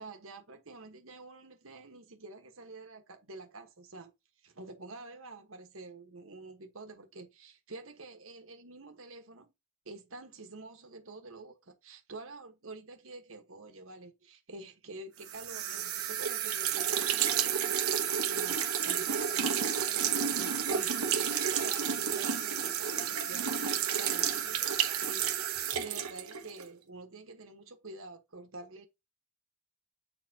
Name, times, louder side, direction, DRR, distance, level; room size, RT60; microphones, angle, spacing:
voice 1, 0.0-4.1 4.4-9.5 9.8-17.9 18.3-28.9, right 3 dB, 65° right, 1.3 m, -48 dB
sound 1, 15.3-26.7, right 8 dB, 90° right, 1.1 m, -31 dB
8.5 x 4.4 x 2.8 m
head